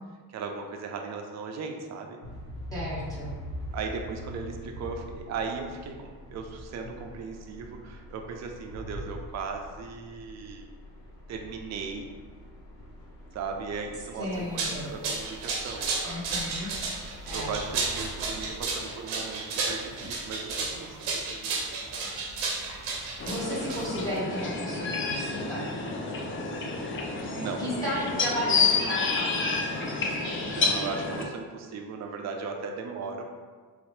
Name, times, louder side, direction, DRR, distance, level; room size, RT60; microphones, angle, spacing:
voice 1, 0.3-2.2 3.7-10.7 11.3-12.1 13.3-16.4 17.2-21.6 21.9-22.0 27.3-27.7 30.4-33.2, right 5 dB, 40° right, 3 dB, 0.4 m, -37 dB
sound 1, 2.2-18.8, equal, 80° left, 0.9 m, -43 dB
voice 2, 2.7-3.3 14.2-14.9 16.0-16.7 17.2-17.5 23.2-25.7 27.6-30.6, equal, 10° left, -7 dB, 0.8 m, -34 dB
sound 2, 14.3-24.2, right 4 dB, 80° right, 0.7 m, -32 dB
sound 3, 23.2-31.2, left 4 dB, 30° left, 0.4 m, -29 dB
2.8 x 2.0 x 3.1 m, 1.5 s
supercardioid pair, 80°, 44 cm